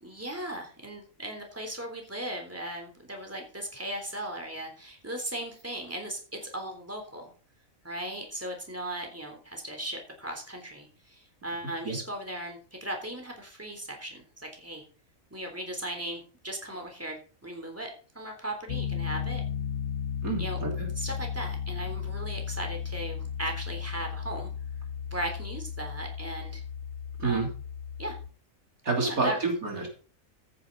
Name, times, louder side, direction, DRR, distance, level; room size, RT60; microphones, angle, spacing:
voice 1, 0.0-7.3 7.8-14.8 15.3-17.2 17.4-17.9 18.2-19.4 20.4-20.6 21.0-24.5 25.1-26.6 27.2-27.5 28.0-28.2 29.0-29.4, right 1 dB, 10° right, 2 dB, 3.5 m, -37 dB
Piano, 18.7-28.3, left 7 dB, 55° left, 0.9 m, -35 dB
voice 2, 20.2-20.9 27.2-27.5 28.8-29.9, right 3 dB, 85° right, 1 dB, 3.8 m, -28 dB
14.0 x 9.6 x 4.0 m, 0.39 s
omnidirectional pair, 1.4 m